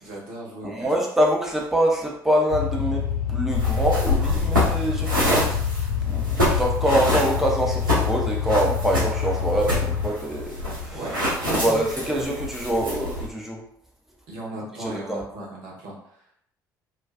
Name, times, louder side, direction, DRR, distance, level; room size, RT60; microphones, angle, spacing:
voice 1, 0.0-0.9 10.9-11.1 11.4-12.2 14.3-16.4, right 1 dB, 60° right, -3 dB, 1.0 m, -36 dB
voice 2, 0.6-5.6 6.1-11.0 11.5-13.6 14.8-15.2, right 1 dB, 5° right, -2 dB, 0.7 m, -25 dB
sound 1, 2.5-10.1, left 8 dB, 65° left, 1.0 m, -26 dB
sound 2, 3.5-13.3, left 1 dB, 85° right, 0.8 m, -27 dB
2.3 x 2.3 x 2.5 m, 0.69 s
figure-of-eight pair, 50°, 11 cm